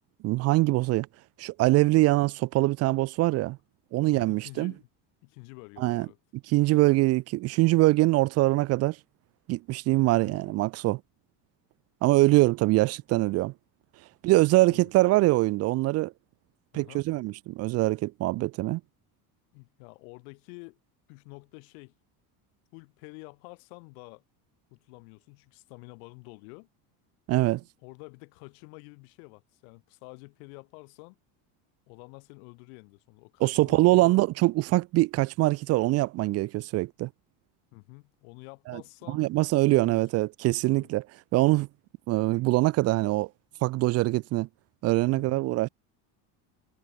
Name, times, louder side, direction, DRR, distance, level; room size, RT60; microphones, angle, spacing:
voice 1, 0.2-1.1 1.4-3.6 3.9-4.7 5.8-6.1 6.5-9.0 9.5-11.0 12.0-13.5 14.2-16.1 16.7-18.8 27.3-27.6 33.4-37.1 38.7-38.8 39.1-41.1 41.3-41.7 42.1-43.3 43.6-44.5 44.8-45.7, right 19 dB, 40° right, 0.4 m, -23 dB
voice 2, 4.0-4.9 5.2-6.2 10.1-10.6 14.7-14.9 16.7-17.0 19.5-20.8 21.1-21.9 22.7-24.2 24.7-26.7 27.8-31.2 31.9-34.2 37.7-39.3 39.7-40.0 40.7-40.9 43.5-43.7 45.1-45.5, left 36 dB, 85° left, 3.7 m, -49 dB
cardioid pair, 165°, 41 cm